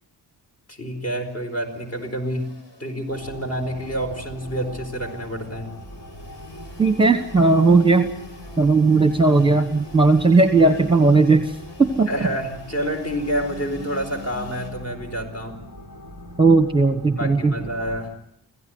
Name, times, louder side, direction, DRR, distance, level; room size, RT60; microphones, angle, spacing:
voice 1, 0.7-5.8 12.1-15.6 17.2-18.2, equal, 35° left, 4 dB, 4.5 m, -28 dB
Engine / Sawing, 0.9-14.7, left 3 dB, 85° left, 5.8 m, -45 dB
sound 1, 3.1-18.0, equal, 50° left, 4.3 m, -41 dB
voice 2, 6.8-8.1 8.6-12.1 16.4-17.5, right 3 dB, 10° right, 8 dB, 1.2 m, -17 dB
26.5 x 16.5 x 7.8 m, 0.75 s
wide cardioid pair, 125°, 42 cm